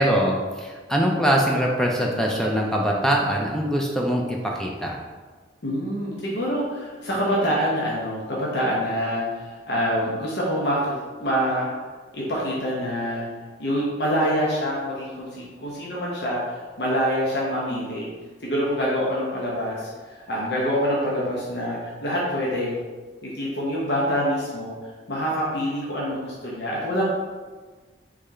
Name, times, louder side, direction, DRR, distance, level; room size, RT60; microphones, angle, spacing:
voice 1, 0.0-5.0, equal, 5° left, -1 dB, 0.4 m, -23 dB
voice 2, 5.6-11.7 12.1-13.3 13.6-18.0 18.4-22.8 23.2-24.7 25.1-27.1, equal, 65° left, -5 dB, 0.9 m, -26 dB
4.1 x 3.2 x 3.7 m, 1.4 s
head